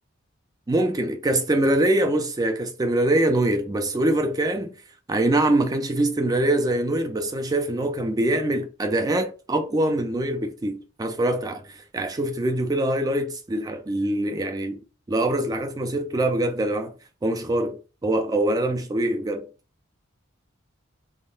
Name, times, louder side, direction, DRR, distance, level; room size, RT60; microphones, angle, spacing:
voice 1, 0.7-4.7 5.1-14.8 15.1-16.9 17.2-19.5, right 1 dB, 20° right, 0.4 m, -24 dB
3.6 x 2.1 x 2.4 m
head